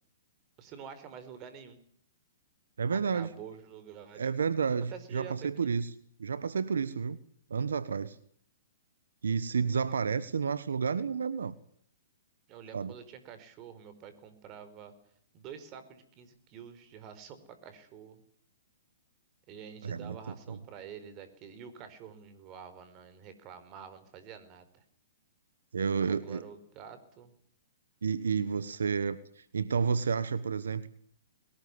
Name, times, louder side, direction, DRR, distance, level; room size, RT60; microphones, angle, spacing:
voice 1, 0.6-1.8 2.9-4.3 4.9-5.7 12.5-14.9 15.3-18.2 19.5-24.8 26.1-27.3, right 7 dB, 35° right, 11 dB, 4.7 m, -48 dB
voice 2, 2.8-3.3 4.1-5.9 6.2-7.2 7.5-8.2 9.2-11.5 12.7-12.9 19.8-20.2 20.5-20.6 25.7-26.4 28.0-30.9, right 6 dB, 80° right, 15 dB, 1.3 m, -30 dB
21.5 x 19.0 x 9.8 m, 0.65 s
hypercardioid pair, 130°, 0 cm